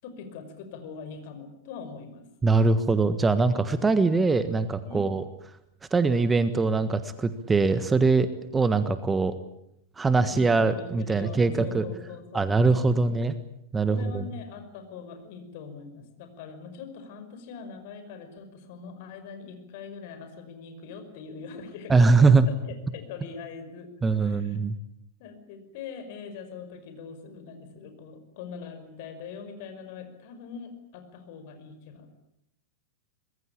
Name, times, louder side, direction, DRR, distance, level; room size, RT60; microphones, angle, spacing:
voice 1, 0.0-2.3 4.8-5.2 10.2-12.9 13.9-23.9 24.2-24.6 25.2-32.1, left 6 dB, 50° left, 8 dB, 5.4 m, -42 dB
voice 2, 2.4-5.2 5.9-8.3 8.5-9.3 10.0-11.8 12.3-13.3 13.7-14.2 21.9-22.5 24.0-24.8, right 3 dB, 15° right, 12 dB, 1.4 m, -22 dB
25.0 x 21.5 x 8.7 m, 0.78 s
figure-of-eight pair, 95°, 0 cm